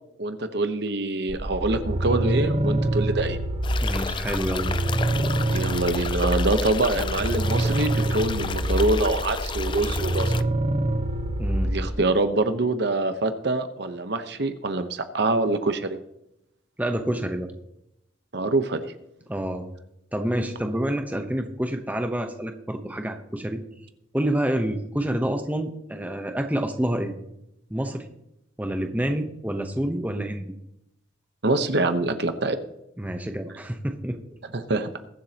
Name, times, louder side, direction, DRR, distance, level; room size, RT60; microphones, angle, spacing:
voice 1, 0.2-3.4 5.5-10.3 11.6-16.0 18.3-18.8 31.4-32.6 34.5-34.9, right 2 dB, 60° right, 9 dB, 0.9 m, -25 dB
sound 1, 1.3-11.9, right 1 dB, 30° right, 1.0 m, -26 dB
sound 2, 3.6-10.4, left 5 dB, 25° left, 0.3 m, -32 dB
voice 2, 3.8-4.7 11.4-11.8 16.8-17.5 19.3-19.6 20.1-23.6 24.1-27.1 27.7-28.1 28.6-30.4 33.0-34.2, right 1 dB, 10° right, 5 dB, 0.9 m, -28 dB
22.0 x 7.5 x 2.9 m, 0.81 s
head